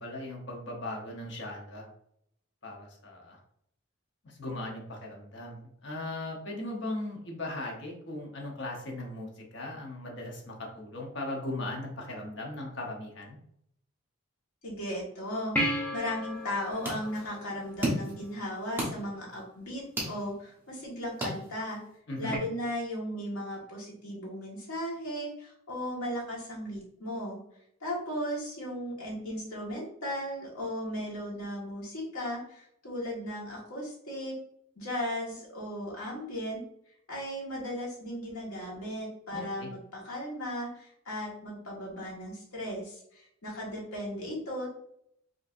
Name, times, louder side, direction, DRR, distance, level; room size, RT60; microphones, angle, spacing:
voice 1, 0.0-1.9 2.6-3.4 4.2-13.4 22.1-22.4 39.3-39.7, left 2 dB, 55° left, 0 dB, 1.0 m, -38 dB
voice 2, 14.6-21.8 22.2-27.4 27.8-34.3 34.7-36.6 37.1-44.7, equal, 75° left, -3 dB, 1.7 m, -36 dB
sound 1, 15.5-18.3 22.3-22.4, equal, 10° left, 0.8 m, -34 dB
sound 2, 16.3-22.0, right 1 dB, 10° right, 1.1 m, -37 dB
5.1 x 3.0 x 2.6 m, 0.72 s
head